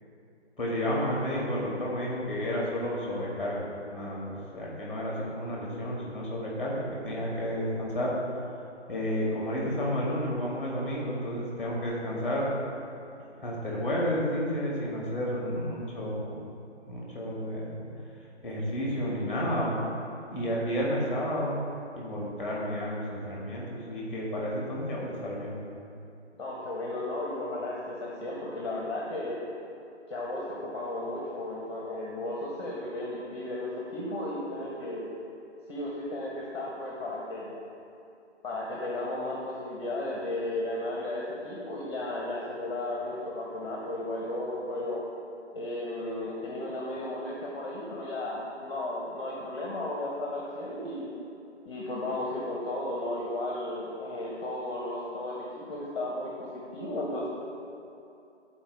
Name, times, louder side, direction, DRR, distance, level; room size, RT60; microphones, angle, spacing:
voice 1, 0.6-8.1 8.9-12.5 13.4-16.4 16.8-17.9 18.4-19.8 20.3-21.6 21.9-25.6, equal, ahead, -4 dB, 1.4 m, -31 dB
voice 2, 26.4-29.4 30.1-35.0 35.7-37.5 38.4-45.1 45.5-51.1 51.6-57.3, left 1 dB, 25° left, -3 dB, 0.9 m, -34 dB
10.0 x 4.3 x 4.7 m, 2.7 s
figure-of-eight pair, 155°, 36 cm